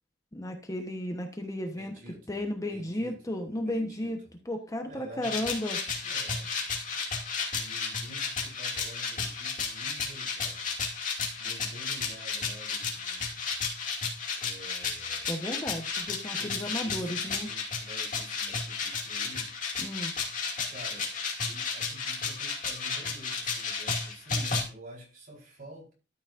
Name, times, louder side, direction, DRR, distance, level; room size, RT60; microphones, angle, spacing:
voice 1, 0.3-1.9 2.3-4.2 4.4-5.8 15.3-17.5 19.8-20.1, left 1 dB, 20° left, 4 dB, 1.1 m, -34 dB
voice 2, 1.7-4.3 4.8-5.5 5.9-6.5 7.5-10.7 11.4-13.5 14.3-15.3 15.6-15.7 16.3-19.5 20.7-21.1 21.4-25.9, equal, 50° right, -2 dB, 4.5 m, -49 dB
sound 1, 5.2-24.6, left 5 dB, 45° left, 2.6 m, -33 dB
12.5 x 7.0 x 2.6 m, 0.34 s
head